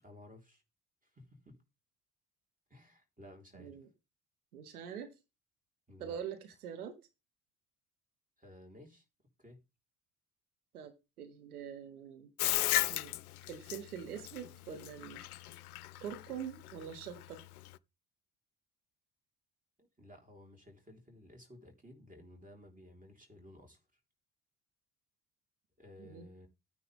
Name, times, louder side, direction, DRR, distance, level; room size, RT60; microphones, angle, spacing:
voice 1, 0.0-0.6 1.0-1.6 2.7-3.8 5.9-6.2 8.4-9.0 9.4-9.6 19.8-23.8 25.8-26.5, left 1 dB, 20° right, 4.2 m, -55 dB
voice 2, 3.5-3.9 4.5-5.2 6.0-7.0 10.7-12.3 12.9-13.1 13.5-15.3 16.0-17.4 26.0-26.3, right 8 dB, 80° right, 1.2 m, -44 dB
Bathtub (filling or washing), 12.4-17.8, left 15 dB, 80° left, 0.5 m, -35 dB
13.0 x 9.4 x 3.6 m
figure-of-eight pair, 45°, 44 cm